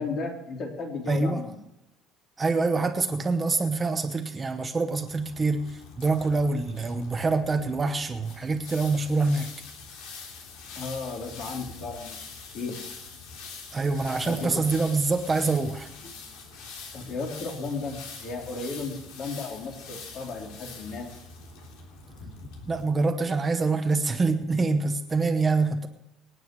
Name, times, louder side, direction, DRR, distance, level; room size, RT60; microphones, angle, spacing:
voice 1, 0.0-1.6 10.8-12.2 12.5-12.8 14.2-14.6 16.9-21.1, left 3 dB, 45° left, 0 dB, 3.6 m, -34 dB
voice 2, 1.1-1.4 2.4-9.5 13.7-15.9 22.7-25.9, right 3 dB, 20° right, 6 dB, 0.9 m, -25 dB
sound 1, 5.0-22.8, left 4 dB, 85° left, 3.4 m, -44 dB
25.5 x 9.3 x 3.2 m, 0.87 s
cardioid pair, 160°, 0 cm